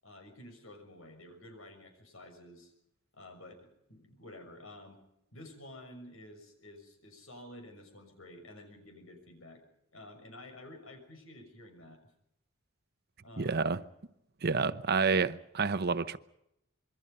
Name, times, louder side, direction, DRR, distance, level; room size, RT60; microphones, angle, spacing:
voice 1, 0.0-2.7 3.1-5.0 5.3-9.6 9.9-12.0 13.2-13.7, left 1 dB, 85° left, 6.3 m, -51 dB
voice 2, 13.4-13.8 14.4-16.2, right 4 dB, 50° right, 0.9 m, -29 dB
26.5 x 23.0 x 5.5 m
head